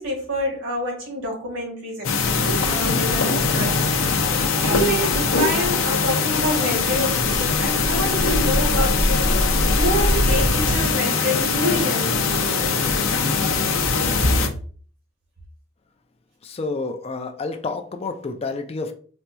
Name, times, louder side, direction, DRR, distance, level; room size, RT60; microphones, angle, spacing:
voice 1, 0.0-9.4 9.8-12.8 14.2-14.4, equal, 75° right, 1.5 m, -27 dB
sound 1, 2.0-14.5, left 5 dB, 80° left, 0.6 m, -22 dB
sound 2, 7.3-11.5, equal, 50° right, 0.8 m, -24 dB
voice 2, 16.4-18.9, left 3 dB, 30° left, 0.4 m, -29 dB
4.2 x 2.7 x 2.2 m
head